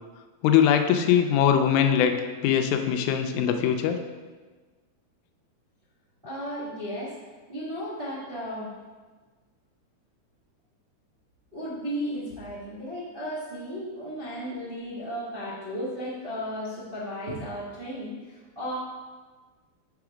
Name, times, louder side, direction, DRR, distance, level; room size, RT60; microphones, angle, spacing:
voice 1, 0.4-2.2 2.4-4.0, left 9 dB, 85° left, 6 dB, 2.0 m, -21 dB
voice 2, 6.2-7.1 7.5-8.7 11.5-18.7, equal, 60° right, -10 dB, 0.5 m, -34 dB
5.9 x 3.8 x 4.9 m, 1.3 s
omnidirectional pair, 3.5 m